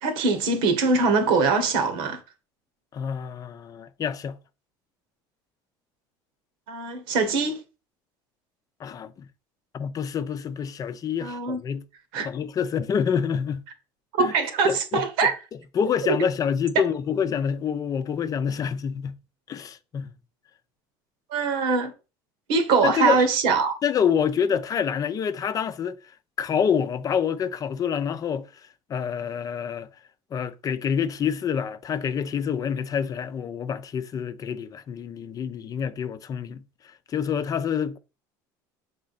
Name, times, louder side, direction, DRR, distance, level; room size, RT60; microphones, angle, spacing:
voice 1, 0.0-2.2 6.7-7.6 11.2-11.6 12.1-12.3 14.1-15.3 16.1-16.2 21.3-21.9 22.5-23.8, right 4 dB, 75° right, 1.5 m, -22 dB
voice 2, 2.9-4.4 8.8-9.3 9.7-11.8 12.2-13.6 14.2-14.3 14.6-15.3 15.7-19.2 19.5-20.1 22.8-23.3 23.8-26.0 26.4-28.5 28.9-29.9 30.3-36.6 37.1-38.0, left 7 dB, 35° left, 0.6 m, -27 dB
6.5 x 3.7 x 4.1 m
supercardioid pair, 95°, 10 cm